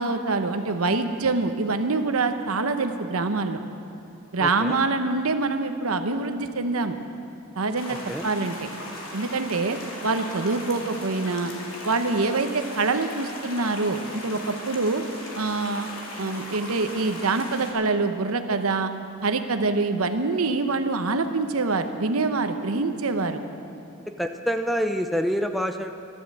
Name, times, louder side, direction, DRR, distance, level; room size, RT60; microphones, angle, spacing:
voice 1, 0.0-3.6 4.3-7.0 7.6-8.0 8.2-8.5 9.1-9.8 10.0-11.5 11.8-15.0 15.4-15.9 16.2-18.9 19.2-23.4, right 3 dB, 85° right, 8 dB, 0.9 m, -25 dB
voice 2, 4.4-4.8 8.1-8.3 24.2-25.9, equal, ahead, 6 dB, 0.5 m, -27 dB
sound 1, 7.7-17.7, left 1 dB, 80° left, 2.6 m, -38 dB
13.5 x 12.0 x 7.5 m, 2.6 s
head